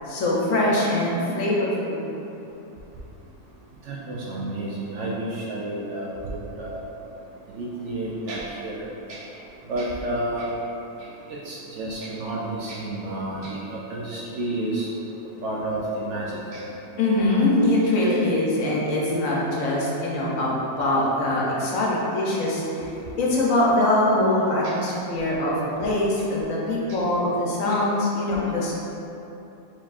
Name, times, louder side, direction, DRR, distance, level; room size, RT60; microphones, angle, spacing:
voice 1, 0.0-2.0 17.0-22.8 23.2-28.7, left 1 dB, 65° left, -5 dB, 1.1 m, -23 dB
voice 2, 3.9-6.8 7.5-8.8 9.1-9.2 9.7-10.5 11.3-14.9 15.4-16.7 18.7-18.8 19.0-19.3 26.9-27.0, right 1 dB, 65° right, -5 dB, 0.8 m, -30 dB
4.4 x 4.1 x 2.4 m, 3.0 s
omnidirectional pair, 1.6 m